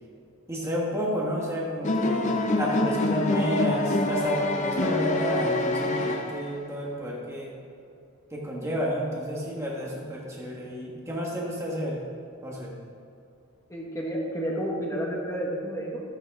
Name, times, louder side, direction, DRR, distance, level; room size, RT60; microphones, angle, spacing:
voice 1, 0.5-2.3 2.5-7.5 8.3-12.0 12.4-12.7, equal, 15° right, -3 dB, 1.3 m, -30 dB
sound 1, 1.8-6.7, left 2 dB, 35° left, 0.6 m, -26 dB
voice 2, 13.7-16.0, right 1 dB, 15° left, -3 dB, 1.4 m, -30 dB
12.0 x 9.0 x 3.6 m, 2.5 s
head